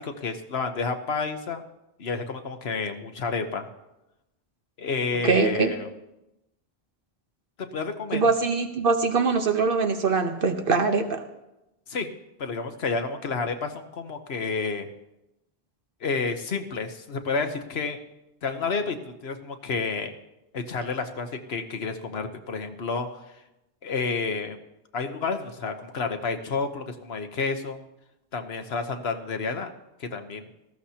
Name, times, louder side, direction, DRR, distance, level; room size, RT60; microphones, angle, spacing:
voice 1, 0.0-1.6 2.0-3.7 4.8-5.9 7.6-8.2 11.9-12.1 12.4-14.9 16.0-18.0 18.4-20.1 20.5-23.2 23.8-24.6 24.9-27.8 28.3-29.7 30.0-30.5, left 4 dB, 80° left, 7 dB, 1.3 m, -30 dB
voice 2, 5.2-5.7 8.1-11.2, right 4 dB, 60° right, 6 dB, 1.2 m, -23 dB
18.5 x 14.5 x 2.9 m, 0.92 s
omnidirectional pair, 1.0 m